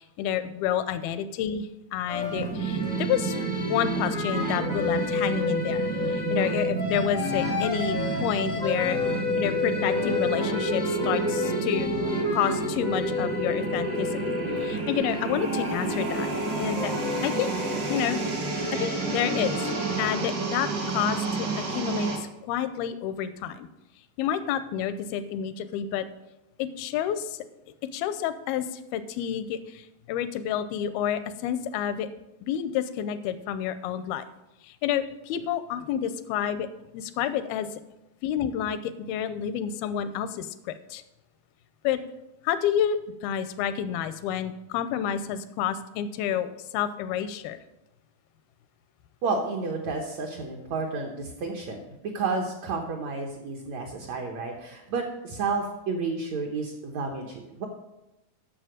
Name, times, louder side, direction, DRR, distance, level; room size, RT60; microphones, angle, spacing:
voice 1, 0.0-3.4 3.7-9.0 9.4-11.9 12.3-16.3 16.6-16.9 17.2-17.5 17.9-18.3 18.8-22.1 22.4-23.7 24.2-26.1 26.6-27.4 27.9-32.1 32.4-34.3 34.6-36.7 36.9-37.7 38.2-41.0 41.8-42.0 42.4-47.6, left 9 dB, 85° left, 13 dB, 2.5 m, -29 dB
sound 1, 2.1-20.2, left 3 dB, 20° left, 0.4 m, -31 dB
sound 2, 2.3-22.2, right 3 dB, 55° right, 1.1 m, -30 dB
voice 2, 49.2-57.7, right 4 dB, 70° right, 0 dB, 1.7 m, -31 dB
11.5 x 6.9 x 5.0 m, 0.94 s
omnidirectional pair, 4.3 m